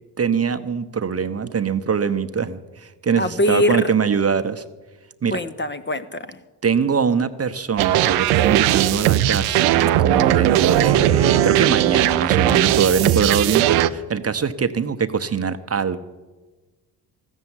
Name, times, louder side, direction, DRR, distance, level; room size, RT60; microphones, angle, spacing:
voice 1, 0.2-4.6 5.2-5.4 6.6-16.0, right 6 dB, 30° right, 11 dB, 0.8 m, -23 dB
voice 2, 3.2-3.9 5.3-6.4, left 1 dB, 20° left, 10 dB, 0.8 m, -22 dB
sound 1, 7.8-13.9, right 13 dB, 80° right, 0.7 m, -18 dB
14.0 x 7.3 x 9.6 m, 1.2 s
hypercardioid pair, 50°, 50 cm